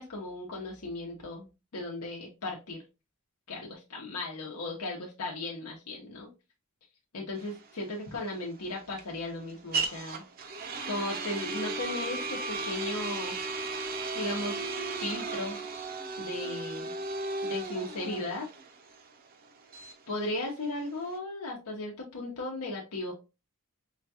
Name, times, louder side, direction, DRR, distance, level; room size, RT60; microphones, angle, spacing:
voice 1, 0.0-1.5 1.7-2.8 3.5-6.3 7.1-10.2 10.9-13.4 14.1-14.6 15.0-15.6 16.2-16.9 17.4-18.5 20.1-23.1, left 2 dB, 90° left, -2 dB, 0.8 m, -36 dB
sound 1, 7.4-21.2, right 3 dB, 45° right, 0.5 m, -36 dB
4.8 x 2.3 x 2.7 m, 0.28 s
head